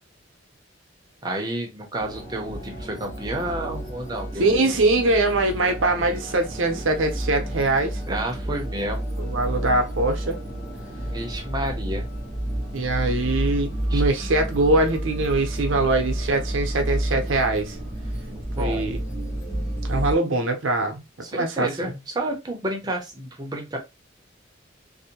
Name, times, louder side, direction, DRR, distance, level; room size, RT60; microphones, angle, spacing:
voice 1, 1.2-4.7 8.1-9.1 11.0-12.1 13.9-14.0 18.3-18.9 21.2-23.8, right 1 dB, 20° right, 0.6 m, -30 dB
sound 1, 2.0-20.1, right 1 dB, 20° left, 1.1 m, -30 dB
voice 2, 4.4-8.0 9.2-10.4 12.7-17.8 18.6-19.0 19.8-21.0 21.3-21.9, right 2 dB, 75° right, 0.6 m, -23 dB
2.6 x 2.1 x 2.8 m
head